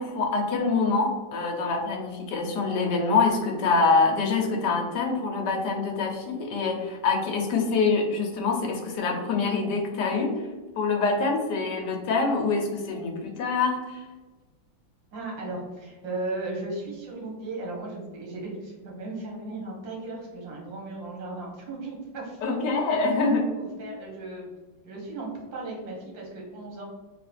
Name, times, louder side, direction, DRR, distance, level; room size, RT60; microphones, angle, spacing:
voice 1, 0.0-10.3 10.7-14.0 22.4-23.5, left 4 dB, 65° left, 1 dB, 1.3 m, -25 dB
voice 2, 15.1-22.6 23.6-24.5 24.8-26.8, right 2 dB, 75° right, -2 dB, 1.9 m, -36 dB
3.8 x 3.2 x 3.3 m, 1.3 s
omnidirectional pair, 2.1 m